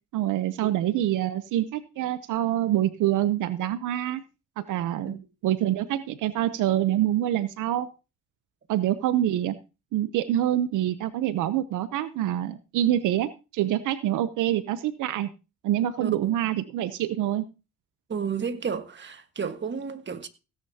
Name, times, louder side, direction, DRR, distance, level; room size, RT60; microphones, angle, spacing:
voice 1, 0.1-4.2 4.6-5.1 5.4-7.9 8.7-9.5 9.9-15.3 15.6-17.4, right 12 dB, 85° right, 0.8 m, -26 dB
voice 2, 16.0-16.3 18.1-20.3, right 6 dB, 40° right, 1.5 m, -32 dB
16.5 x 10.0 x 2.8 m
cardioid pair, 90°, 30 cm